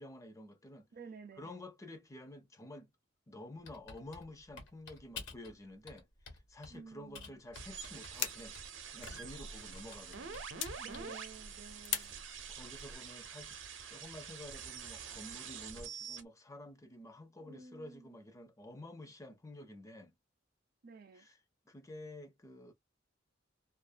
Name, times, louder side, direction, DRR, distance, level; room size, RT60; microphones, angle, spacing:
voice 1, 0.0-0.9 1.4-2.9 3.3-8.6 8.9-10.5 11.0-11.2 12.5-13.6 13.9-20.1 21.1-21.4 21.7-22.7, left 1 dB, 15° left, 0.4 m, -50 dB
voice 2, 0.9-1.6 6.7-7.4 10.7-12.2 17.4-18.2 20.8-21.3, right 4 dB, 50° right, 0.5 m, -52 dB
Typing, 3.7-5.5 5.9-6.8 7.1-9.4 9.7-11.2, left 4 dB, 85° left, 1.2 m, -50 dB
sound 1, 7.5-16.2, right 6 dB, 90° right, 0.7 m, -47 dB
sound 2, 7.6-13.0, left 8 dB, 70° left, 0.5 m, -44 dB
2.4 x 2.2 x 2.4 m
head